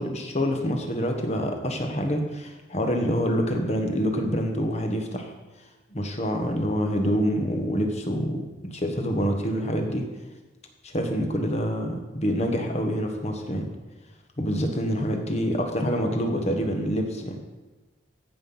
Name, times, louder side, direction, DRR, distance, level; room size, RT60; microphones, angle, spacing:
voice 1, 0.0-5.3 5.9-10.0 10.8-13.7 14.4-17.4, equal, 35° left, 3 dB, 1.4 m, -26 dB
14.5 x 5.8 x 5.5 m, 1.1 s
head